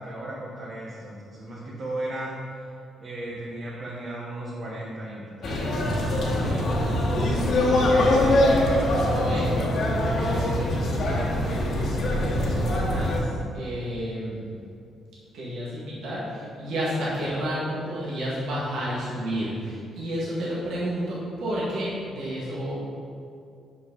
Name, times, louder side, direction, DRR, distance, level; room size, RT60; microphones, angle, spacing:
voice 1, 0.0-2.4 3.0-6.2, right 1 dB, 45° right, -6 dB, 1.5 m, -36 dB
sound 1, 5.4-13.2, left 1 dB, 60° left, 1.4 m, -23 dB
voice 2, 6.4-6.9 7.5-10.0 10.2-14.5 15.3-22.8, equal, 80° right, -7 dB, 1.9 m, -32 dB
6.1 x 5.8 x 5.4 m, 2.4 s
cardioid pair, 90°, 0 cm